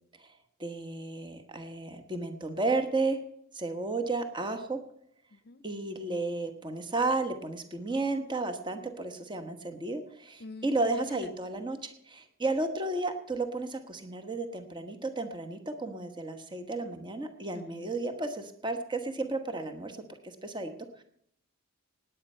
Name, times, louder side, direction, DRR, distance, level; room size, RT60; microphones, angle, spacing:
voice 1, 0.6-3.2 3.5-4.8 5.6-20.0 20.2-20.7 21.0-21.1, right 2 dB, 20° right, 1.2 m, -33 dB
voice 2, 5.3-5.6 10.4-11.3 17.5-17.9, left 2 dB, 45° left, 0.7 m, -46 dB
18.0 x 9.3 x 5.5 m
head